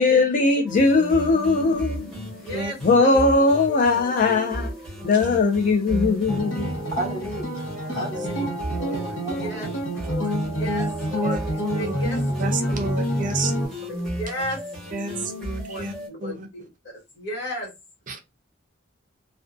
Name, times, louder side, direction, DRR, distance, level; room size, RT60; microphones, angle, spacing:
voice 1, 0.0-2.1 2.8-4.7 5.0-6.7, left 3 dB, 45° left, 0.4 m, -19 dB
sound 1, 0.7-16.1, equal, 5° left, 0.9 m, -35 dB
voice 2, 2.4-3.1 8.2-8.3 8.8-9.7 10.1-12.8 13.9-15.3 15.7-16.6 17.1-17.7, equal, 60° left, 1.4 m, -35 dB
sound 2, 6.3-13.7, equal, 80° left, 0.9 m, -27 dB
voice 3, 6.9-7.7 7.9-8.7 9.2-9.7, right 1 dB, 25° left, 1.0 m, -33 dB
voice 4, 12.4-13.9 14.9-15.9 16.2-16.5 18.1-18.2, right 3 dB, 45° right, 0.5 m, -31 dB
2.5 x 2.2 x 2.4 m
head